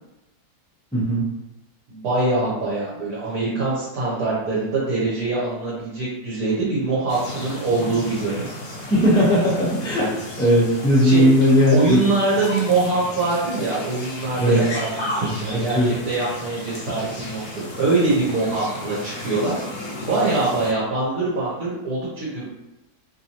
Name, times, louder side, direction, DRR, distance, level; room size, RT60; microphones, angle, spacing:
voice 1, 0.9-1.3 8.9-10.1 10.4-12.0 14.4-14.7 15.3-15.9, equal, 5° left, -6 dB, 0.3 m, -18 dB
voice 2, 1.9-8.5 10.0-10.1 11.0-11.2 11.7-19.6 20.0-22.4, right 3 dB, 65° right, -8 dB, 1.3 m, -23 dB
sound 1, 7.1-20.7, left 1 dB, 65° left, 0.7 m, -34 dB
3.0 x 2.6 x 2.8 m, 0.93 s
omnidirectional pair, 1.7 m